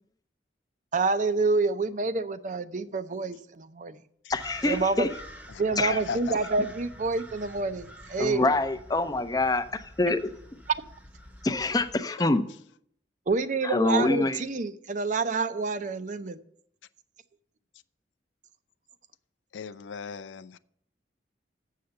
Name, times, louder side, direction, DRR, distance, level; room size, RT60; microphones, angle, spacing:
voice 1, 0.9-4.0 4.7-5.1 5.6-8.5 13.3-16.4, right 3 dB, 45° right, 0.5 m, -28 dB
voice 2, 4.3-5.1 5.8-6.0 8.2-10.3 11.4-12.5 13.6-14.4, left 2 dB, 20° left, 0.5 m, -25 dB
sound 1, 4.3-12.0, equal, 10° right, 0.8 m, -47 dB
voice 3, 5.5-6.3 12.2-12.3 19.5-20.6, left 6 dB, 90° left, 0.4 m, -38 dB
7.6 x 6.6 x 6.8 m
head